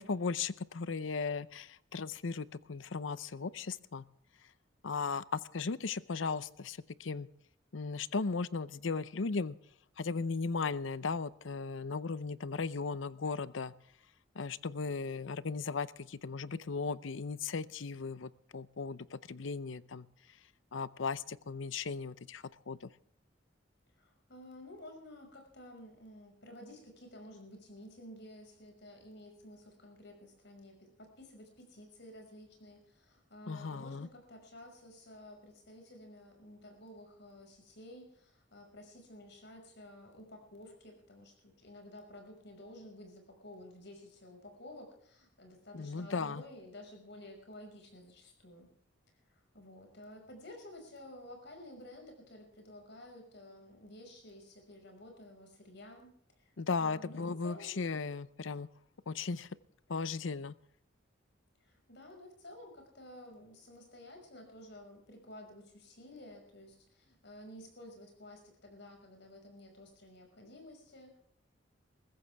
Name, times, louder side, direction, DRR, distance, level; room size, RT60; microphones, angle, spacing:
voice 1, 0.0-4.1 4.8-7.3 7.7-9.6 10.0-13.7 14.3-20.1 20.7-22.9 33.5-34.1 45.7-46.4 56.6-58.7 59.1-59.5 59.9-60.5, left 4 dB, 85° left, 18 dB, 0.7 m, -36 dB
voice 2, 23.9-48.7 49.2-56.1 56.4-57.9 61.6-71.2, left 1 dB, 65° left, 3 dB, 5.7 m, -52 dB
21.0 x 15.5 x 3.5 m, 0.66 s
head